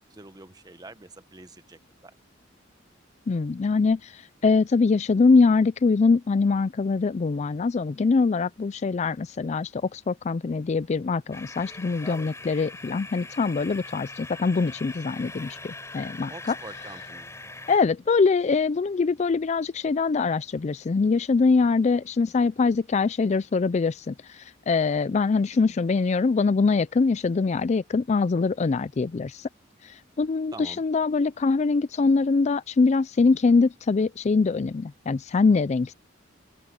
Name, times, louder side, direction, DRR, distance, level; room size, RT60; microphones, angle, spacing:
voice 1, 0.1-2.1 16.3-17.3 30.5-30.8, right 2 dB, 20° right, 1.2 m, -45 dB
voice 2, 3.3-16.6 17.7-29.5 29.8-35.9, left 4 dB, 35° left, 0.4 m, -23 dB
sound 1, 11.3-17.8, left 2 dB, 15° left, 7.0 m, -41 dB
open air
head